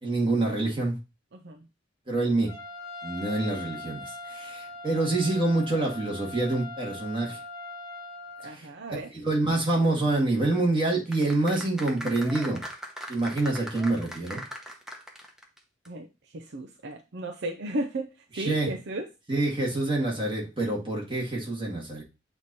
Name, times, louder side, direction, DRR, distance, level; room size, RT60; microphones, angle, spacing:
voice 1, 0.0-0.9 2.1-2.5 3.0-4.0 4.3-7.4 8.5-8.7 9.1-12.6 13.1-14.4 18.3-18.7 19.3-22.0, right 2 dB, 25° right, -3 dB, 2.1 m, -26 dB
voice 2, 1.3-1.6 8.4-9.1 15.9-16.1 16.3-18.1 18.4-19.1, right 1 dB, 60° right, 4 dB, 0.6 m, -34 dB
Trumpet, 2.5-8.5, left 2 dB, 20° left, 1.3 m, -41 dB
sound 1, 11.1-15.6 15.9-16.0, equal, 5° right, 0.9 m, -40 dB
7.8 x 3.0 x 4.1 m, 0.28 s
head